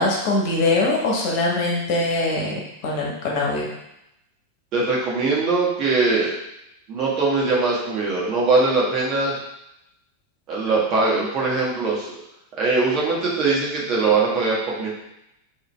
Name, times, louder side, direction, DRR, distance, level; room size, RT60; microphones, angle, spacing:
voice 1, 0.0-3.7, left 2 dB, 45° left, -2 dB, 1.3 m, -22 dB
voice 2, 4.7-6.3 6.9-9.3 10.5-12.1 12.6-14.9, right 3 dB, 35° right, -5 dB, 1.6 m, -21 dB
4.5 x 3.5 x 3.4 m, 0.84 s
figure-of-eight pair, 90°, 0 cm